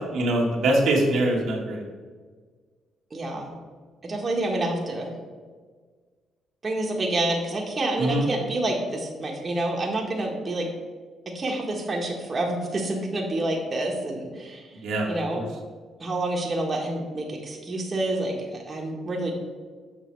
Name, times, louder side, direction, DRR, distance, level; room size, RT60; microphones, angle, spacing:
voice 1, 0.1-1.8 8.0-8.3 14.8-15.4, right 1 dB, 75° right, -1 dB, 1.7 m, -23 dB
voice 2, 3.1-3.5 4.0-5.1 6.6-10.7 11.3-14.7 15.1-15.5 16.0-19.3, right 2 dB, 35° right, -1 dB, 1.5 m, -28 dB
7.4 x 5.4 x 4.6 m, 1.5 s
cardioid pair, 90°, 0 cm